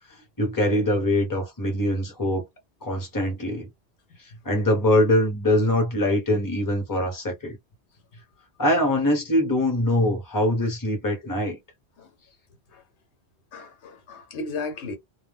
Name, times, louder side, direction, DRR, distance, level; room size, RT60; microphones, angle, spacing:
voice 1, 0.4-2.4 2.8-3.7 4.4-7.6 8.6-11.6, left 1 dB, 20° left, 0.9 m, -23 dB
voice 2, 13.5-15.0, left 3 dB, 85° left, 1.1 m, -35 dB
2.3 x 2.1 x 3.4 m
omnidirectional pair, 1.1 m